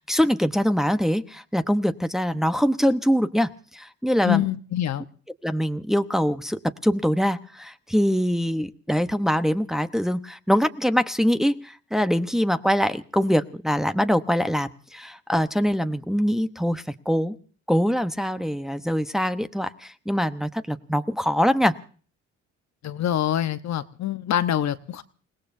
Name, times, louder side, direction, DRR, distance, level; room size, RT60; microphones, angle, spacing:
voice 1, 0.0-4.5 5.4-17.3 17.7-21.7, equal, ahead, 8 dB, 1.0 m, -23 dB
voice 2, 4.2-5.0 22.8-25.0, left 11 dB, 65° left, 11 dB, 1.0 m, -25 dB
29.0 x 18.0 x 2.7 m, 0.42 s
cardioid pair, 90°, 30 cm